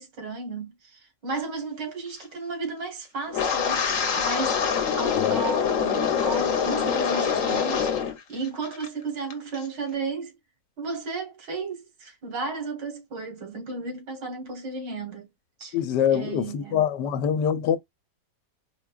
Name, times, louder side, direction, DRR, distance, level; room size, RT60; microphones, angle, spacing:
voice 1, 0.0-7.9 8.3-10.3 10.8-15.3 15.6-15.8 16.1-16.9, right 4 dB, 90° right, 2.2 m, -34 dB
Wind, 3.3-8.2 8.4-8.9 9.3-9.6, left 7 dB, 55° left, 1.2 m, -25 dB
voice 2, 15.7-17.8, left 9 dB, 85° left, 1.3 m, -24 dB
4.8 x 2.2 x 2.3 m
omnidirectional pair, 1.8 m